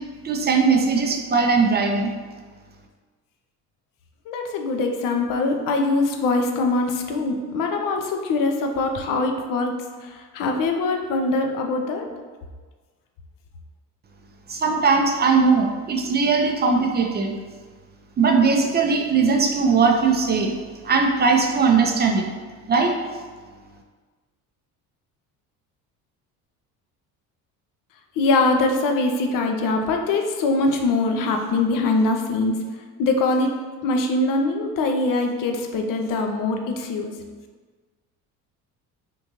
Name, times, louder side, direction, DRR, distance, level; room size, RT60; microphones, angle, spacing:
voice 1, 0.2-2.1 14.5-17.3 18.2-20.5 20.8-22.2 22.7-22.9, right 4 dB, 25° right, 2 dB, 0.5 m, -19 dB
voice 2, 4.3-9.7 10.0-12.1 28.2-32.5 33.0-33.5 33.8-37.1, left 3 dB, 50° left, 3 dB, 0.6 m, -23 dB
3.6 x 2.6 x 2.9 m, 1.4 s
hypercardioid pair, 65°, 44 cm